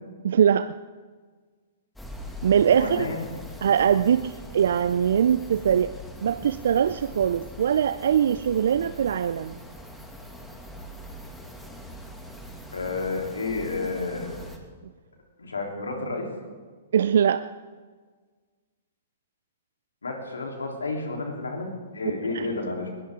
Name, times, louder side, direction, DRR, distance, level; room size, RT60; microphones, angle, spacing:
voice 1, 0.2-0.7 2.4-3.1 3.6-5.9 6.2-9.6 16.9-17.4 22.3-22.5, right 8 dB, 65° right, 13 dB, 0.5 m, -22 dB
sound 1, 2.0-14.6, equal, 5° left, 2.3 m, -42 dB
voice 2, 2.7-3.2 12.7-14.3 15.4-16.3 20.0-22.9, left 3 dB, 85° left, 1 dB, 3.6 m, -31 dB
20.5 x 18.5 x 3.8 m, 1.5 s
figure-of-eight pair, 115°, 0 cm